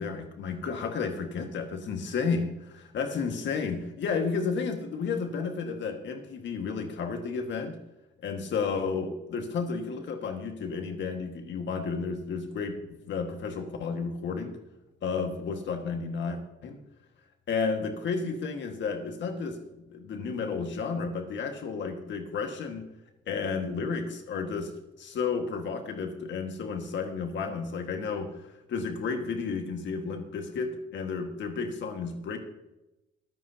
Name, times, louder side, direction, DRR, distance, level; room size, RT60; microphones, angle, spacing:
voice 1, 0.0-2.5 2.7-7.8 8.2-14.6 15.0-16.8 17.5-19.6 19.9-22.8 23.3-24.7 25.0-32.4, left 5 dB, 65° left, 4 dB, 1.7 m, -32 dB
24.0 x 8.1 x 2.8 m, 0.95 s
cardioid pair, 90°, 20 cm